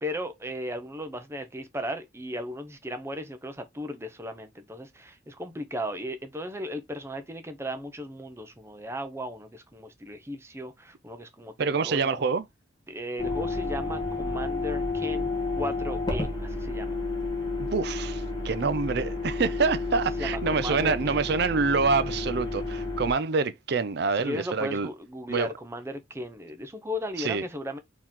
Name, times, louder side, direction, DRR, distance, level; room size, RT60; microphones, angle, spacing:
voice 1, 0.0-12.3 12.9-17.0 20.2-21.3 24.1-27.8, equal, 15° right, 0.6 m, -36 dB
voice 2, 11.6-12.4 17.6-24.9 25.3-25.5 27.2-27.4, right 4 dB, 55° right, 0.4 m, -26 dB
sound 1, 13.2-23.1, left 3 dB, 20° left, 1.5 m, -31 dB
4.5 x 3.0 x 3.6 m
head